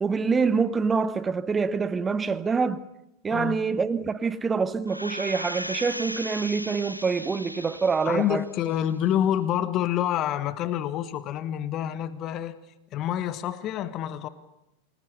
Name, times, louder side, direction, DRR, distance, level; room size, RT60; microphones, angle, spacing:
voice 1, 0.0-2.8 3.2-8.4, right 5 dB, 15° right, 1.1 m, -26 dB
voice 2, 3.3-3.6 8.0-12.6 12.9-14.3, left 11 dB, 35° left, 1.4 m, -27 dB
sound 1, 4.9-8.3 8.7-8.8, equal, 90° right, 0.8 m, -36 dB
28.0 x 20.0 x 6.9 m
figure-of-eight pair, 90°, 0 cm